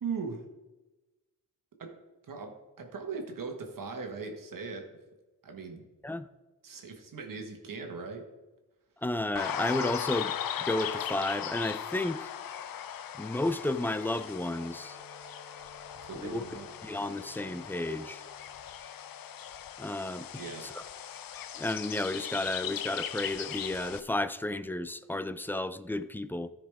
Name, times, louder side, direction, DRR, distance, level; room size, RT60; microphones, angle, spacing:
voice 1, 0.0-0.4 1.8-1.9 2.3-5.0 5.4-5.9 6.6-8.2 16.0-16.7 20.4-20.6, right 5 dB, 75° right, 1.5 m, -39 dB
voice 2, 9.0-12.3 13.2-15.0 16.2-16.4 16.8-18.2 19.8-20.3 20.6-20.7 21.6-26.5, left 2 dB, 5° left, 0.4 m, -32 dB
sound 1, 9.4-24.0, left 10 dB, 85° left, 0.5 m, -38 dB
Bowed string instrument, 13.6-19.1, right 2 dB, 35° left, 2.7 m, -58 dB
13.5 x 4.9 x 3.5 m
wide cardioid pair, 85°, 33 cm